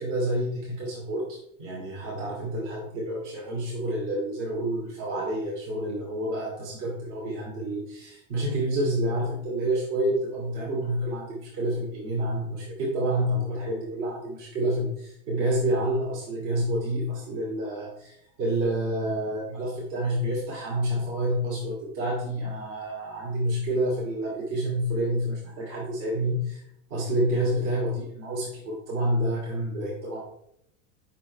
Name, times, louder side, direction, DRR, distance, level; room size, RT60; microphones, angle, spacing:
voice 1, 0.0-26.6 26.9-30.2, right 1 dB, 55° right, -4 dB, 2.7 m, -28 dB
7.2 x 6.0 x 3.2 m, 0.72 s
supercardioid pair, 140°, 41 cm